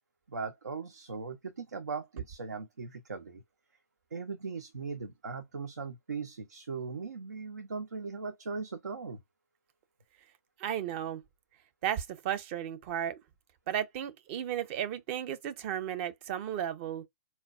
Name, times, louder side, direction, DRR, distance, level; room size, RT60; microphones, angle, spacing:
voice 1, 0.3-3.4 4.1-9.2, right 4 dB, 90° right, 0.6 m, -39 dB
voice 2, 10.6-11.2 11.8-13.2 13.7-17.1, right 10 dB, 45° right, 0.7 m, -34 dB
4.2 x 2.2 x 2.3 m
hypercardioid pair, 120°, 9 cm